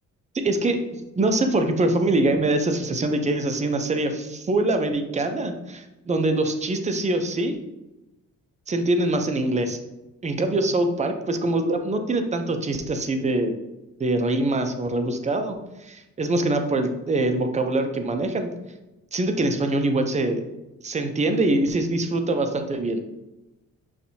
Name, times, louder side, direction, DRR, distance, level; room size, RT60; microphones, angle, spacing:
voice 1, 0.4-0.8 1.2-7.6 8.7-9.8 10.2-13.6 14.0-18.5 19.1-20.4 20.8-23.0, right 2 dB, 25° right, 6 dB, 0.5 m, -24 dB
5.8 x 2.7 x 2.7 m, 0.99 s
cardioid pair, 90°, 30 cm